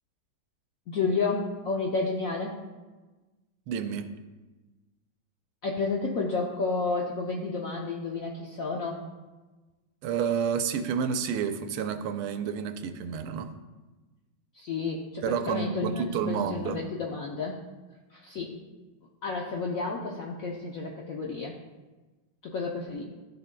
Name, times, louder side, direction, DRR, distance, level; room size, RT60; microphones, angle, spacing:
voice 1, 0.9-2.5 5.6-9.0 14.5-17.6 18.1-18.5 19.2-21.5 22.4-23.0, left 4 dB, 75° left, -1 dB, 0.8 m, -31 dB
voice 2, 3.7-4.1 10.0-13.5 15.2-16.8, right 7 dB, 85° right, 8 dB, 1.5 m, -30 dB
12.5 x 6.7 x 2.2 m, 1.2 s
omnidirectional pair, 2.3 m